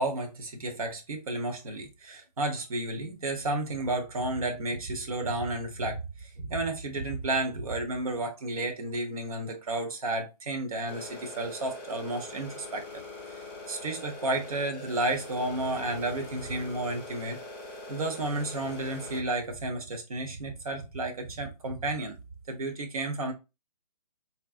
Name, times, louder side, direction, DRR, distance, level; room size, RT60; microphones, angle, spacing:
voice 1, 0.0-13.0 13.3-13.4 13.7-17.4 17.9-22.2 22.5-23.3, right 2 dB, 60° right, 1.1 m, -32 dB
sound 1, 10.9-19.2, left 2 dB, 10° left, 0.6 m, -43 dB
3.7 x 2.9 x 2.4 m
figure-of-eight pair, 145°, 21 cm